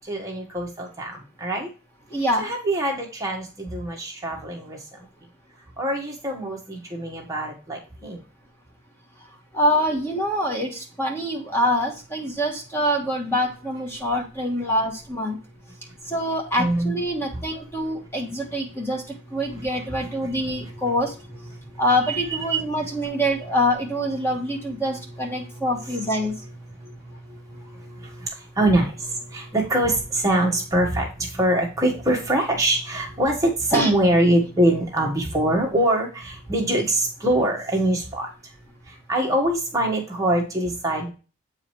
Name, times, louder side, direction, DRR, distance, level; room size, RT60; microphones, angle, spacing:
voice 1, 0.0-1.7 2.4-5.0 5.8-8.2 16.6-16.9 20.3-20.7 22.3-22.4 25.5-25.6 26.8-38.3 38.9-41.1, right 1 dB, 15° right, -1 dB, 1.5 m, -24 dB
voice 2, 2.1-2.5 9.5-15.4 16.1-21.1 21.8-26.3 33.7-33.9, equal, 10° left, 0 dB, 1.4 m, -25 dB
8.2 x 5.0 x 3.1 m, 0.33 s
head